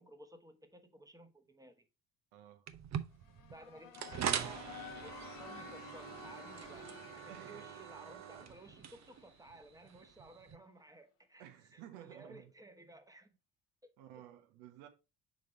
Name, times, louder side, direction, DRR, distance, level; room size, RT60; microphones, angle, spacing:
voice 1, 0.0-1.8 3.5-11.5 11.7-13.4 13.8-13.9, right 2 dB, 10° right, 1.1 m, -56 dB
voice 2, 2.3-2.7 7.3-7.7 11.4-12.5 14.0-14.9, right 11 dB, 70° right, 1.2 m, -54 dB
sound 1, 2.7-10.6, right 8 dB, 40° right, 0.7 m, -43 dB
sound 2, 3.1-9.9, left 9 dB, 50° left, 1.0 m, -54 dB
6.2 x 3.6 x 4.3 m
hypercardioid pair, 55°, 42 cm